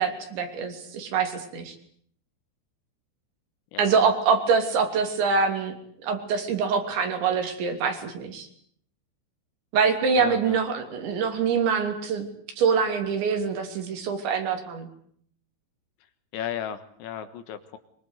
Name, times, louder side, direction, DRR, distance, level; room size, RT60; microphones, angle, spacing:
voice 1, 0.0-1.8 3.8-5.7 6.0-8.5 9.7-12.3 12.6-14.9, right 5 dB, 65° right, 6 dB, 5.1 m, -25 dB
voice 2, 10.2-10.6 16.3-17.8, left 9 dB, 70° left, 10 dB, 3.5 m, -35 dB
24.0 x 23.5 x 8.2 m, 0.63 s
omnidirectional pair, 5.8 m